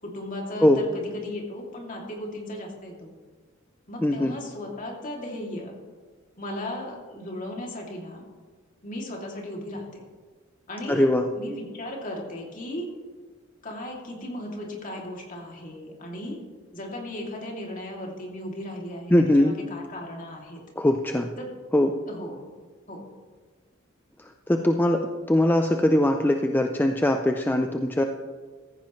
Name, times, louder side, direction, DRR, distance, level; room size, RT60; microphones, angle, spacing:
voice 1, 0.0-3.1 3.9-5.8 6.4-8.2 8.8-10.0 10.7-11.1 11.4-12.9 13.6-16.4 16.7-19.1 19.4-20.6 21.4-21.5 22.1-22.4 22.9-23.0, left 1 dB, 40° left, -1 dB, 2.7 m, -36 dB
voice 2, 4.0-4.4 10.9-11.2 19.1-19.6 20.8-21.3 21.7-22.0 24.2-28.0, left 1 dB, 10° left, 4 dB, 0.5 m, -21 dB
15.5 x 14.5 x 3.2 m, 1.4 s
head